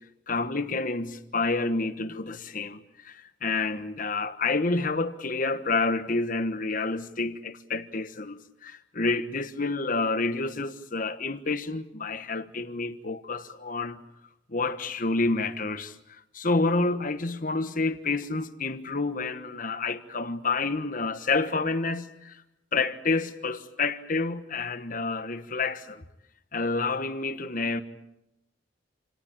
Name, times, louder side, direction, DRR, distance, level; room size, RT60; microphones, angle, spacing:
voice 1, 0.3-14.0 14.5-22.4 22.7-26.0 26.5-27.8, left 3 dB, 40° left, 1.3 m, -29 dB
28.0 x 18.5 x 8.8 m
head